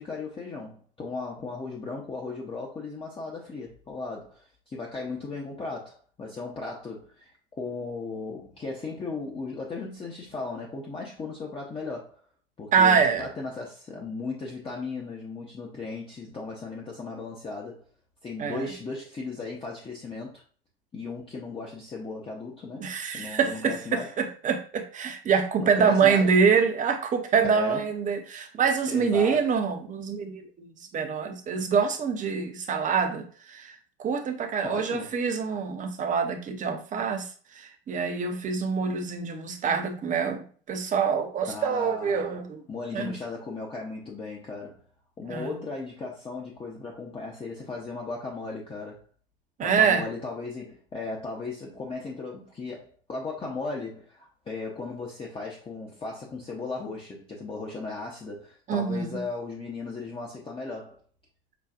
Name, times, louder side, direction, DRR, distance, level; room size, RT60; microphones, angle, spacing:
voice 1, 0.0-12.2 12.6-17.8 18.2-20.4 20.9-24.2 25.6-26.3 27.4-27.9 28.9-29.5 34.6-35.1 41.5-42.4 42.7-44.8 45.2-49.0 49.6-61.0, left 3 dB, 20° left, 0.8 m, -36 dB
voice 2, 12.7-13.3 18.4-18.7 22.8-30.7 30.9-37.3 37.5-42.6 42.9-43.1 45.3-45.5 49.6-50.0 58.7-59.1, right 6 dB, 25° right, 0.7 m, -25 dB
5.8 x 2.3 x 2.5 m
hypercardioid pair, 85°, 30 cm